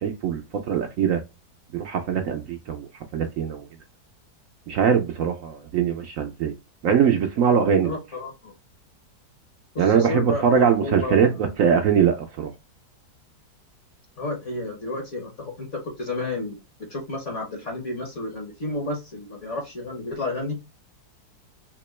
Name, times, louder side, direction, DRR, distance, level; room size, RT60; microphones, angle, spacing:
voice 1, 0.0-1.2 1.7-3.7 4.7-6.5 6.8-7.9 9.8-12.5, right 7 dB, 70° right, 0.8 m, -22 dB
voice 2, 7.8-8.5 9.7-11.5 14.2-16.6 16.9-20.6, left 2 dB, 50° left, 1.3 m, -31 dB
3.6 x 2.9 x 3.1 m
omnidirectional pair, 1.8 m